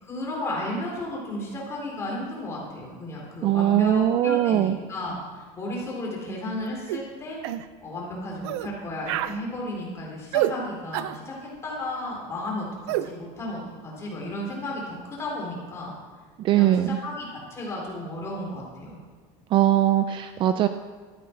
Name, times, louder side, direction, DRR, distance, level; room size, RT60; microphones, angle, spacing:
voice 1, 0.0-7.4 7.8-11.4 11.6-15.9 16.5-19.0, left 1 dB, 20° left, -3 dB, 3.8 m, -34 dB
voice 2, 3.4-4.8 16.4-17.0 19.5-20.7, right 12 dB, 35° right, 10 dB, 0.5 m, -21 dB
sound 1, 6.9-7.1 7.4-7.7 8.4-8.7 9.0-9.4 10.3-10.6 10.9-11.2 12.9-13.1, right 14 dB, 80° right, 0.6 m, -27 dB
13.5 x 9.1 x 5.8 m, 1.4 s
cardioid pair, 160°, 14 cm